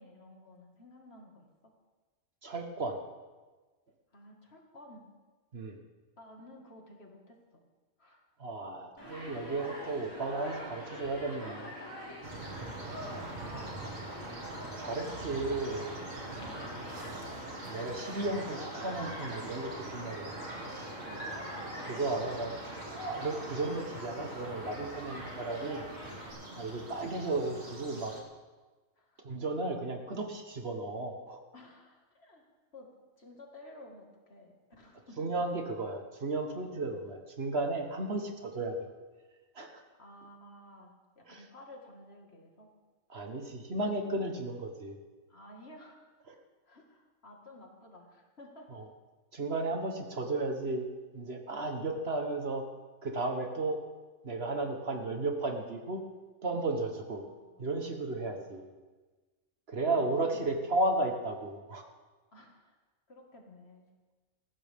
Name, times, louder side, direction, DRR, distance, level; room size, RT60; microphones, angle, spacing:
voice 1, 0.0-1.7 4.1-5.1 6.2-7.6 8.0-8.2 11.3-12.0 12.2-14.0 16.2-17.3 21.0-21.5 26.5-26.7 29.0-29.3 31.5-32.5 32.7-35.3 36.9-37.1 40.0-42.7 45.3-46.0 46.7-48.7 57.1-57.7 58.2-58.5 60.0-60.4 62.3-62.8 63.1-63.9, left 1 dB, 50° left, 0 dB, 2.3 m, -54 dB
voice 2, 2.4-3.0 5.5-5.8 8.4-11.6 14.8-15.9 17.6-20.4 21.8-22.5 23.2-25.8 26.6-28.2 29.2-31.4 35.2-38.7 39.5-39.8 41.3-41.4 43.1-45.0 48.7-48.8 49.3-50.9 51.1-52.6 53.0-53.8 54.2-56.0 56.4-57.2 57.6-58.7 59.7-61.8, right 2 dB, 50° right, 4 dB, 1.5 m, -34 dB
Human group actions, 9.0-26.3, equal, 20° left, 6.2 m, -45 dB
sound 1, 12.2-28.2, right 2 dB, 70° right, 2.5 m, -43 dB
19.0 x 15.0 x 3.6 m, 1.3 s
omnidirectional pair, 1.4 m